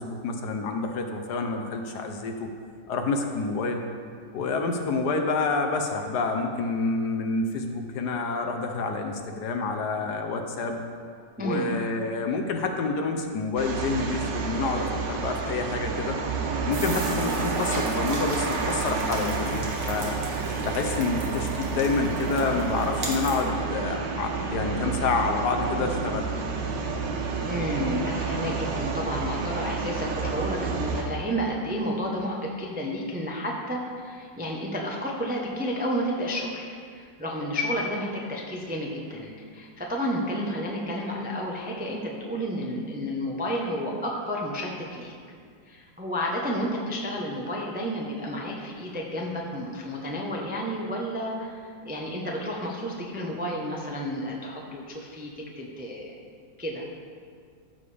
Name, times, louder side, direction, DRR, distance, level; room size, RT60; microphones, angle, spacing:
voice 1, 0.0-2.5 2.9-3.8 4.3-10.8 11.4-16.2 16.6-20.2 20.6-26.3, left 3 dB, 65° left, 4 dB, 1.2 m, -28 dB
voice 2, 11.4-11.7 27.4-45.1 45.7-56.1 56.6-56.8, equal, 10° right, -2 dB, 0.5 m, -31 dB
sound 1, 13.6-31.0, right 4 dB, 70° right, 1.5 m, -29 dB
sound 2, 16.7-23.4, right 2 dB, 40° right, 1.7 m, -40 dB
14.5 x 6.9 x 3.4 m, 2.1 s
omnidirectional pair, 2.0 m